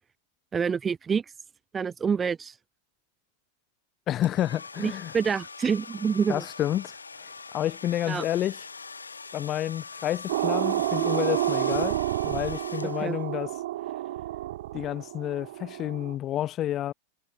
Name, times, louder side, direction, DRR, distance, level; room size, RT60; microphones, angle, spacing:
voice 1, 0.5-1.3 1.7-2.6 4.8-6.4 8.1-8.3 12.8-13.2, right 6 dB, 20° right, 0.7 m, -27 dB
voice 2, 4.1-5.1 6.3-7.0 7.2-7.3 7.5-8.6 9.3-12.0 12.2-13.5 14.7-16.9, left 12 dB, 30° left, 1.5 m, -29 dB
sound 1, 4.2-13.4, left 4 dB, 75° left, 6.7 m, -41 dB
sound 2, 10.3-16.1, right 14 dB, 55° right, 0.9 m, -29 dB
figure-of-eight pair, 90°, 0 cm